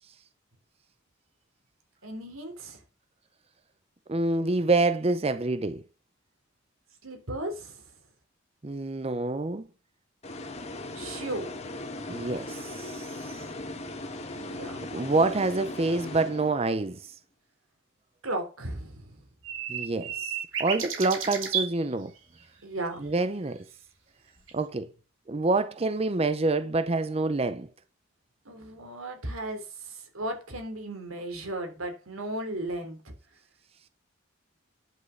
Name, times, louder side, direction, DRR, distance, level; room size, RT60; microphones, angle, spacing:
voice 1, 2.0-2.8 7.0-7.8 10.9-11.6 14.4-14.9 18.2-19.2 22.6-23.1 28.4-33.1, right 1 dB, 90° right, 3.3 m, -36 dB
voice 2, 4.1-5.8 8.6-9.6 12.1-13.4 14.9-17.1 19.7-20.3 20.6-22.1 23.0-23.6 24.5-24.9 25.3-27.7, right 3 dB, 30° right, 0.6 m, -27 dB
sound 1, 10.2-16.9, left 2 dB, 30° left, 1.5 m, -38 dB
sound 2, 19.4-21.7 24.5-24.6, right 7 dB, 70° right, 3.1 m, -32 dB
10.5 x 6.4 x 5.7 m
head